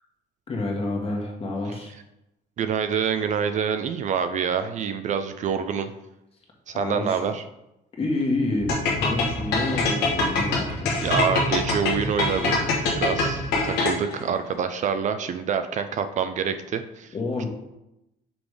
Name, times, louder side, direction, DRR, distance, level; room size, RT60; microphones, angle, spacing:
voice 1, 0.5-1.9 6.7-7.2 7.9-11.1 17.1-17.5, left 2 dB, 35° left, 0 dB, 1.6 m, -28 dB
voice 2, 2.6-5.9 6.7-7.4 11.0-17.1, right 7 dB, 45° right, 9 dB, 0.4 m, -26 dB
sound 1, 8.6-13.8, right 2 dB, 25° right, 1.2 m, -35 dB
sound 2, 8.7-14.2, left 3 dB, 85° left, 1.3 m, -24 dB
6.1 x 3.4 x 4.9 m, 0.90 s
cardioid pair, 110°, 17 cm